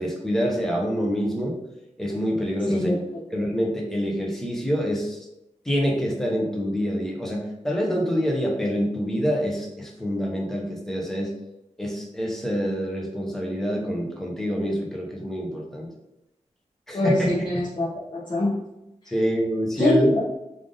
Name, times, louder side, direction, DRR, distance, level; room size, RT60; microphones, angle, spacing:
voice 1, 0.0-1.6 2.0-3.0 3.3-5.2 5.6-11.3 11.8-15.9 16.9-17.6 19.1-20.1, equal, 5° left, -2 dB, 0.7 m, -26 dB
voice 2, 16.9-17.9 18.1-18.6 19.8-20.2, left 1 dB, 40° left, -6 dB, 0.8 m, -23 dB
3.4 x 2.5 x 3.7 m, 0.87 s
wide cardioid pair, 140°, 13 cm